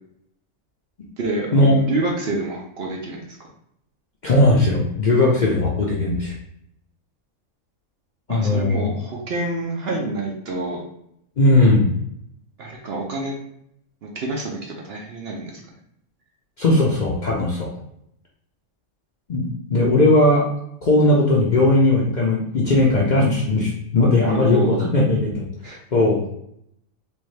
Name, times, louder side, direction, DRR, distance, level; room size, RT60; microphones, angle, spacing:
voice 1, 1.2-3.4 8.3-10.8 12.6-13.3 14.0-14.6 14.8-15.6 24.2-24.9 25.6-25.8, right 2 dB, 55° right, -1 dB, 0.8 m, -27 dB
voice 2, 4.2-6.3 8.3-8.9 11.4-11.9 16.6-17.7 19.3-20.4 20.8-25.4 25.9-26.2, left 2 dB, 50° left, -4 dB, 0.6 m, -18 dB
3.4 x 2.6 x 3.1 m, 0.75 s
omnidirectional pair, 1.4 m